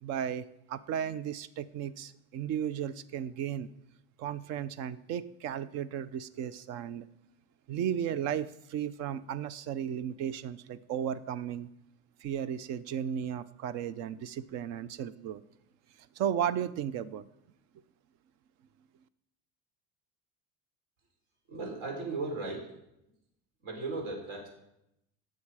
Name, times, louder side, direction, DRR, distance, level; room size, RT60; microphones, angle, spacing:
voice 1, 0.0-3.7 4.2-7.1 7.7-11.7 12.2-15.4 16.2-17.2, right 9 dB, 50° right, 16 dB, 0.7 m, -35 dB
voice 2, 21.5-22.6 23.6-24.5, right 3 dB, 75° right, 0 dB, 5.5 m, -36 dB
19.0 x 7.5 x 4.9 m, 0.81 s
cardioid pair, 160°, 32 cm